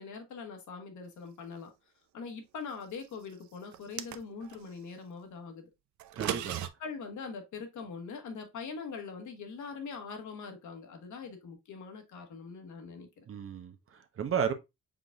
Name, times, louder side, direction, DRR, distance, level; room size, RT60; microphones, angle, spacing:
voice 1, 0.0-1.7 2.1-5.6 6.8-13.2, left 5 dB, 70° left, 1.2 m, -42 dB
sound 1, 3.7-4.6 6.0-6.7, right 12 dB, 70° right, 0.5 m, -36 dB
voice 2, 6.1-6.6 13.0-14.5, right 7 dB, 45° right, 0.9 m, -34 dB
4.9 x 4.0 x 2.3 m
cardioid pair, 90°, 30 cm